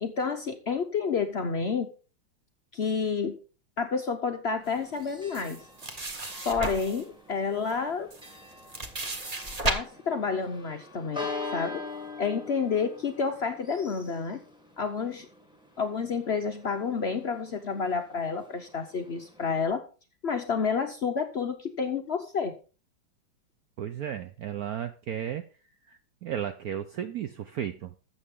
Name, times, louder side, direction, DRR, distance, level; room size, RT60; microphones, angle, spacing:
voice 1, 0.0-1.9 2.7-3.4 3.8-5.6 6.4-8.1 9.6-11.8 12.2-14.4 14.8-15.3 15.8-19.8 20.2-22.5, left 5 dB, 75° left, 6 dB, 0.5 m, -29 dB
Church bell, 4.6-19.7, left 3 dB, 5° right, 1.1 m, -44 dB
sound 1, 5.3-7.0 7.7-7.8 8.1-9.7, right 2 dB, 30° right, 0.8 m, -33 dB
voice 2, 23.8-25.4 25.9-28.0, right 9 dB, 70° right, 10 dB, 0.9 m, -34 dB
12.5 x 7.7 x 3.6 m, 0.36 s
omnidirectional pair, 2.2 m